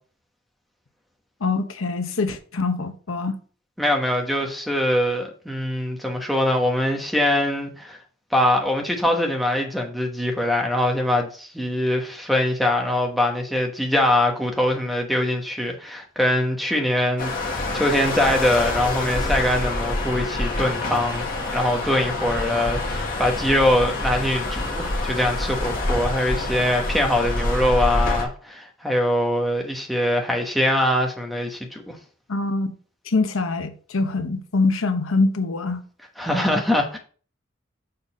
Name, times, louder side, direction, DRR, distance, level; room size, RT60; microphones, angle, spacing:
voice 1, 1.4-3.3 32.3-32.8 33.1-35.8, left 3 dB, 80° left, 0.9 m, -24 dB
voice 2, 3.8-8.0 8.3-21.3 21.5-32.0 36.2-37.0, left 1 dB, ahead, 1.1 m, -23 dB
sound 1, 17.2-28.2, left 2 dB, 45° left, 1.7 m, -26 dB
6.7 x 4.0 x 5.4 m
head